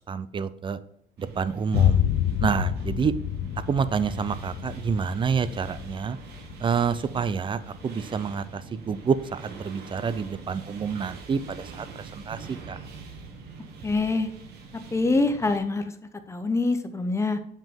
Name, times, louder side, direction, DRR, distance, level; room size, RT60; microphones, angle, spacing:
voice 1, 0.1-0.8 1.2-2.0 2.4-3.1 3.7-6.2 6.6-12.8, right 6 dB, 30° right, 15 dB, 0.4 m, -28 dB
sound 1, 1.2-15.6, right 5 dB, 75° right, 1.6 m, -44 dB
Boom, 1.7-9.6, left 11 dB, 80° left, 0.6 m, -29 dB
voice 2, 13.8-14.3 14.9-15.9 16.3-17.4, left 3 dB, 15° left, 9 dB, 0.8 m, -24 dB
7.6 x 5.1 x 3.7 m, 0.72 s
cardioid pair, 110°, 17 cm